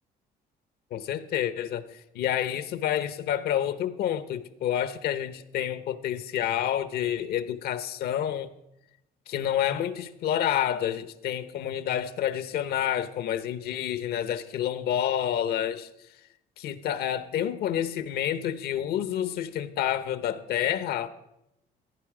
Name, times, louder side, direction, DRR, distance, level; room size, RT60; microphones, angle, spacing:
voice 1, 0.9-8.5 9.3-15.9 16.6-21.1, left 10 dB, 70° left, 14 dB, 0.8 m, -29 dB
15.5 x 9.5 x 4.9 m, 0.87 s
cardioid pair, 135°, 17 cm